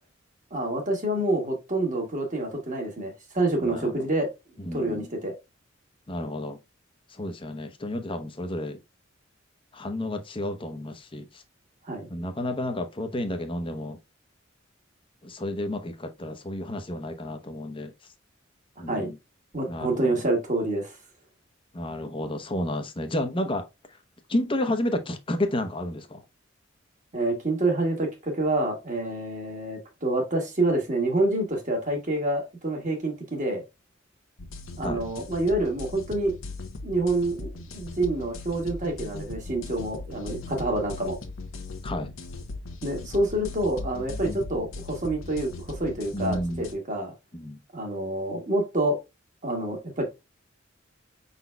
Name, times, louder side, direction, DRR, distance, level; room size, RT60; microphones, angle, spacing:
voice 1, 0.5-4.3 4.7-5.3 11.8-12.1 18.9-19.1 19.5-20.9 27.1-33.6 34.8-36.3 36.8-41.2 42.8-47.1 47.7-49.0 49.4-50.0, right 2 dB, 40° right, 1.6 m, -27 dB
voice 2, 3.6-4.1 4.7-5.1 6.1-6.6 7.1-8.8 9.7-11.4 12.1-14.0 15.2-17.9 18.8-19.2 19.7-20.2 21.7-23.7 24.3-26.2 34.8-35.0 41.8-42.1 46.1-46.7 47.3-47.6, left 1 dB, 25° left, 0.7 m, -31 dB
sound 1, 34.4-46.7, left 2 dB, 90° left, 0.9 m, -39 dB
5.5 x 4.0 x 2.2 m
head